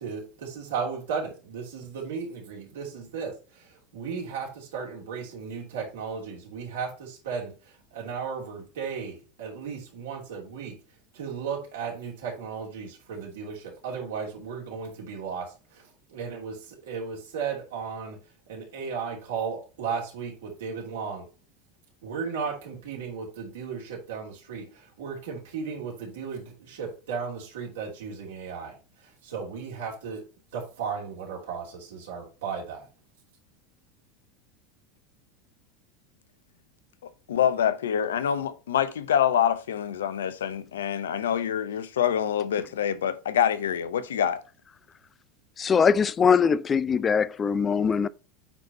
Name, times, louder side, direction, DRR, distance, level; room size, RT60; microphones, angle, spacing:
voice 1, 0.0-3.3 3.6-3.7 3.9-7.5 7.9-10.8 11.1-15.5 16.1-18.2 18.5-21.2 22.0-28.7 29.2-30.2 30.5-32.9, right 6 dB, 75° right, 2.9 m, -35 dB
voice 2, 37.3-44.4, left 9 dB, 80° left, 0.7 m, -26 dB
voice 3, 45.6-48.1, left 6 dB, 30° left, 0.5 m, -22 dB
9.0 x 4.1 x 4.2 m
hypercardioid pair, 85°, 0 cm